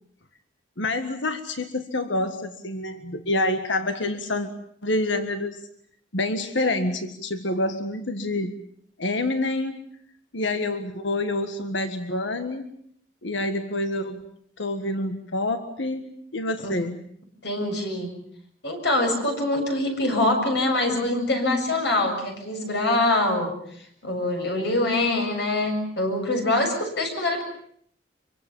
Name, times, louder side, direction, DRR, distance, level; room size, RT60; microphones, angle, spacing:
voice 1, 0.8-4.5 4.8-5.6 6.1-8.5 9.0-9.8 10.3-12.7 13.2-14.2 14.6-17.0, left 2 dB, 80° left, 8 dB, 1.7 m, -27 dB
voice 2, 17.4-18.1 18.6-23.5 24.0-27.4, left 2 dB, 65° left, 4 dB, 7.5 m, -24 dB
25.5 x 24.0 x 7.2 m, 0.64 s
head